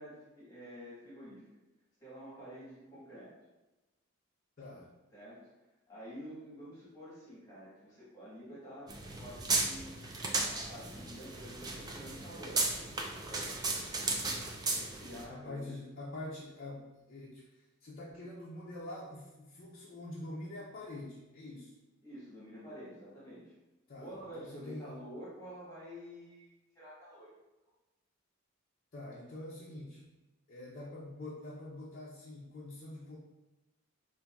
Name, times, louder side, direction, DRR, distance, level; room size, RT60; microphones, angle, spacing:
voice 1, 0.0-1.4 2.0-3.3 5.1-5.4 5.9-9.9 10.3-12.8 13.3-13.6 14.6-15.8 22.0-23.5 23.9-27.3, equal, 15° left, -10 dB, 1.2 m, -49 dB
voice 2, 4.6-4.9 15.3-21.7 23.9-25.0 28.9-30.1 30.5-33.2, left 1 dB, 40° left, -5 dB, 0.5 m, -45 dB
sound 1, 8.9-15.2, right 3 dB, 20° right, 0.3 m, -35 dB
5.3 x 2.6 x 2.3 m, 1.1 s
head